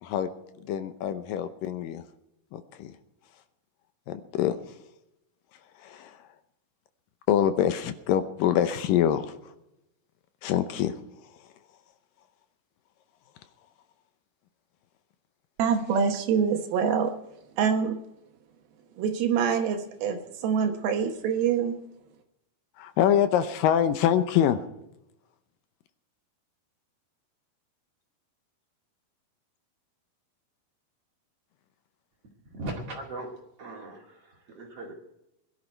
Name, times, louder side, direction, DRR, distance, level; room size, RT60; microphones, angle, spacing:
voice 1, 0.7-2.0 2.5-2.9 4.1-4.6 5.8-6.2 7.3-9.3 10.4-11.0 22.8-24.6, left 10 dB, 75° left, 2.3 m, -25 dB
voice 2, 15.6-17.1 17.6-18.0 19.0-21.8, right 7 dB, 85° right, 3.0 m, -25 dB
voice 3, 32.4-33.3 33.6-34.9, right 1 dB, 45° right, 2.7 m, -38 dB
20.5 x 11.5 x 4.5 m
omnidirectional pair, 4.3 m